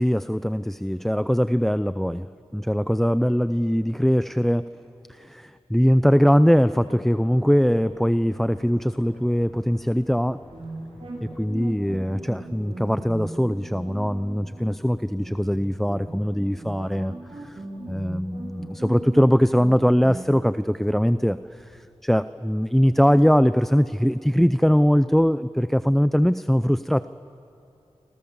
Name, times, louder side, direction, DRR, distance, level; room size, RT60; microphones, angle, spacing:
voice 1, 0.0-4.7 5.1-10.4 11.2-17.6 17.9-27.1, equal, ahead, 13 dB, 0.5 m, -21 dB
sound 1, 6.5-21.8, left 1 dB, 60° left, 6.3 m, -51 dB
sound 2, 10.5-20.3, right 2 dB, 55° right, 5.1 m, -38 dB
28.0 x 26.0 x 7.2 m, 2.9 s
wide cardioid pair, 70°, 11 cm